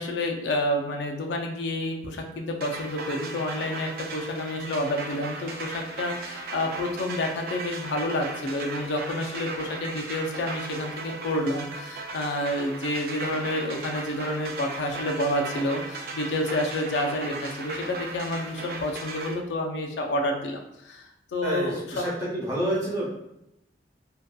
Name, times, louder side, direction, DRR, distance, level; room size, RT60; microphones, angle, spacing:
voice 1, 0.0-22.1, left 1 dB, 80° left, 2 dB, 0.4 m, -29 dB
sound 1, 2.6-19.4, right 3 dB, 55° right, 0.3 m, -37 dB
voice 2, 21.4-23.1, right 1 dB, 20° right, -7 dB, 0.8 m, -28 dB
2.6 x 2.2 x 2.2 m, 0.84 s
head